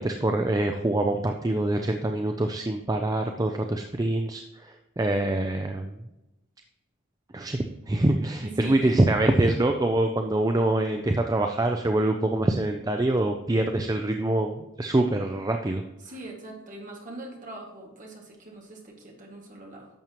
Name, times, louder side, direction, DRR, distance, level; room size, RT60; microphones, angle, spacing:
voice 1, 0.0-6.0 7.3-15.8, right 1 dB, 20° right, 5 dB, 0.4 m, -25 dB
voice 2, 8.4-9.0 16.0-19.9, right 2 dB, 40° right, -1 dB, 2.0 m, -41 dB
10.5 x 7.1 x 3.0 m, 0.94 s
head